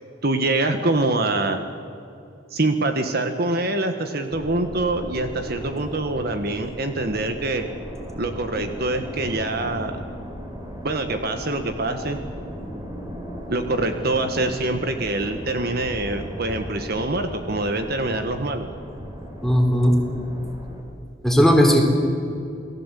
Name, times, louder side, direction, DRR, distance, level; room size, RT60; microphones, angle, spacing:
voice 1, 0.2-1.6 2.5-7.7 8.2-10.0 10.8-12.2 13.5-18.7, right 2 dB, 55° right, 7 dB, 1.5 m, -25 dB
sound 1, 4.3-20.8, equal, 20° right, 4.5 m, -36 dB
voice 2, 19.4-19.9 21.2-21.8, equal, ahead, 1 dB, 3.8 m, -16 dB
28.5 x 19.0 x 8.4 m, 2.6 s
head